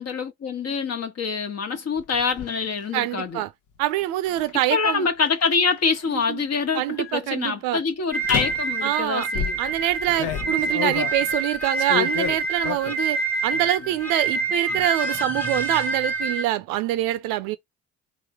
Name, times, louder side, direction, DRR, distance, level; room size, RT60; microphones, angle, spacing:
voice 1, 0.0-3.4 4.7-9.6, left 5 dB, 50° left, 1.2 m, -25 dB
sound 1, 2.0-2.5 4.3-4.5 5.3-6.1 6.8-7.1 8.2-8.7 9.3-13.1 13.5-14.0 14.3-14.9, left 10 dB, 65° left, 0.8 m, -31 dB
voice 2, 2.9-3.5 3.8-5.1 6.1-6.4 6.7-7.8 8.8-9.3 9.6-17.6, right 14 dB, 75° right, 0.6 m, -25 dB
sound 2, 8.1-16.4, right 3 dB, 5° left, 1.1 m, -27 dB
3.2 x 3.1 x 4.7 m
hypercardioid pair, 60°, 34 cm